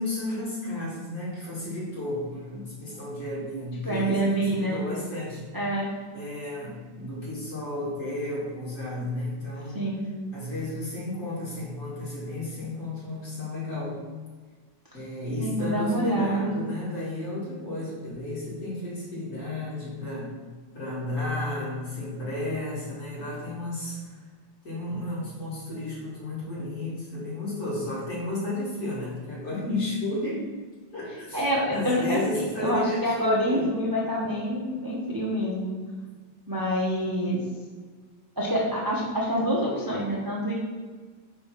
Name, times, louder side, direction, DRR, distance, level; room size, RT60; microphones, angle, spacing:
voice 1, 0.0-5.5 6.1-9.8 10.3-14.0 14.9-20.4 20.7-24.2 24.6-30.5 30.9-33.7 36.0-36.1, left 1 dB, 45° left, -6 dB, 2.4 m, -33 dB
voice 2, 3.8-4.8 5.5-5.9 9.7-10.0 15.4-16.5 31.3-35.7 36.5-37.4 38.4-40.5, equal, 25° right, -5 dB, 0.4 m, -26 dB
5.3 x 3.5 x 5.6 m, 1.5 s
omnidirectional pair, 2.0 m